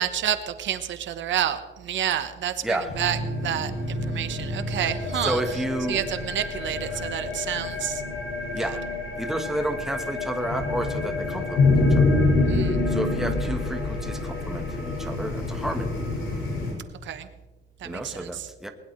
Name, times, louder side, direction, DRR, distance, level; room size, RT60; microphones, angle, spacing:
voice 1, 0.0-5.4 5.9-8.0 8.6-8.7 12.5-12.8 17.0-17.3 17.8-18.5, right 10 dB, 65° right, 10 dB, 1.1 m, -29 dB
voice 2, 2.6-3.0 5.1-6.0 6.8-7.1 8.5-8.8 9.2-12.2 12.9-16.0 17.8-18.7, right 1 dB, ahead, 5 dB, 1.2 m, -31 dB
sound 1, 2.9-16.7, left 2 dB, 85° left, 7.2 m, -27 dB
20.5 x 20.5 x 3.2 m, 1.2 s
cardioid pair, 165°, 21 cm